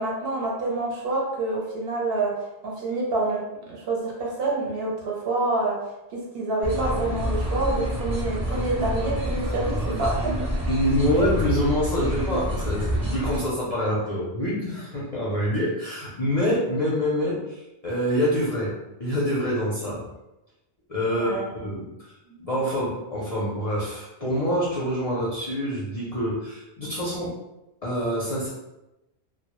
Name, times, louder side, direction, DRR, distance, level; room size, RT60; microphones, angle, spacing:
voice 1, 0.0-2.3 2.6-3.4 3.7-5.8 6.3-10.3 21.1-21.9 22.3-22.5, right 2 dB, 65° right, -3 dB, 0.8 m, -27 dB
sound 1, 6.6-13.4, equal, 20° right, 0.9 m, -27 dB
voice 2, 10.7-18.7 19.0-20.0 20.9-21.9 22.4-27.3 27.8-28.5, equal, 45° left, -7 dB, 0.5 m, -26 dB
2.1 x 2.0 x 2.9 m, 0.94 s
omnidirectional pair, 1.1 m